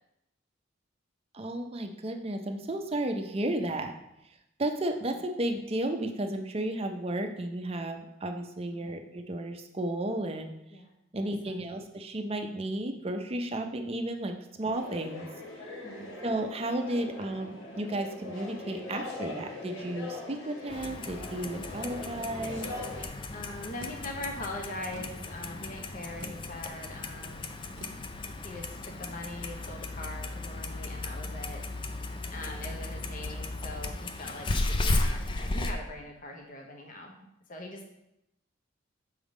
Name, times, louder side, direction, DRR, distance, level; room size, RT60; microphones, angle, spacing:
voice 1, 1.3-4.0 4.6-10.5 11.1-15.3 16.2-22.7, right 1 dB, 30° right, 5 dB, 0.5 m, -33 dB
voice 2, 8.7-9.0 10.7-10.9 11.2-11.8 15.8-16.1 23.3-27.5 28.4-31.6 32.3-37.9, left 1 dB, 40° left, 2 dB, 0.7 m, -42 dB
sound 1, 14.7-23.1, left 2 dB, 70° left, 1.1 m, -41 dB
Clock, 20.7-35.7, left 2 dB, 25° left, 0.4 m, -35 dB
sound 2, 23.8-29.4, right 2 dB, 85° right, 0.8 m, -52 dB
6.3 x 3.6 x 4.8 m, 0.85 s
head